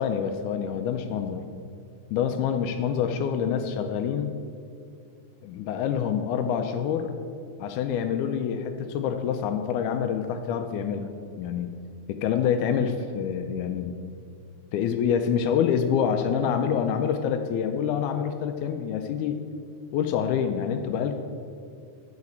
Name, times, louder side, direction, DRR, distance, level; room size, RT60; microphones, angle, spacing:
voice 1, 0.0-1.5 2.1-4.3 5.4-7.2 7.6-11.7 12.1-14.0 14.7-19.4 19.9-21.2, left 8 dB, 85° left, 7 dB, 2.1 m, -26 dB
11.0 x 4.9 x 8.4 m, 2.4 s
omnidirectional pair, 3.5 m